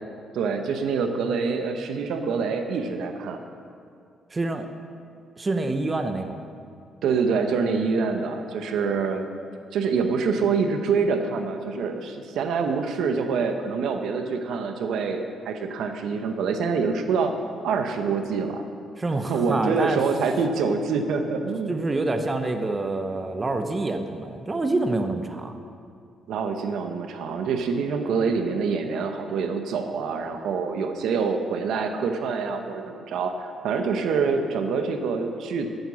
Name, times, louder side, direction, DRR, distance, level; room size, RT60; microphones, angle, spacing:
voice 1, 0.3-3.4 7.0-9.2 9.7-17.3 17.6-18.6 19.3-21.7 26.3-35.7, right 5 dB, 80° right, 6 dB, 0.9 m, -26 dB
voice 2, 4.3-4.7 5.4-6.4 19.0-20.0 21.7-25.5, right 2 dB, 25° right, 7 dB, 0.9 m, -27 dB
12.5 x 8.8 x 6.3 m, 2.4 s
cardioid pair, 90°, 0 cm